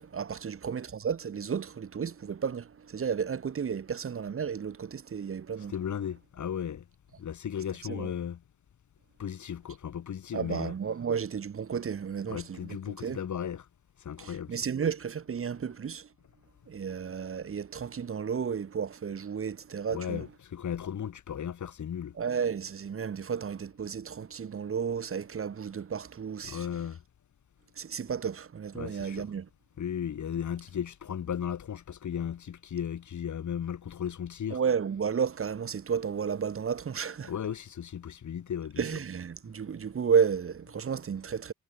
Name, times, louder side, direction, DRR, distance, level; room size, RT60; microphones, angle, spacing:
voice 1, 0.1-5.7 7.9-8.1 10.3-13.2 14.2-16.1 16.7-20.2 22.1-26.7 27.8-29.5 34.5-37.3 38.8-41.5, right 7 dB, 40° right, 1.1 m, -32 dB
voice 2, 5.7-6.9 7.2-8.4 9.2-10.7 12.3-13.7 14.0-14.5 19.9-22.2 26.4-27.0 28.7-29.3 29.8-34.6 37.2-38.8, left 9 dB, 65° left, 2.6 m, -35 dB
cardioid pair, 60°, 32 cm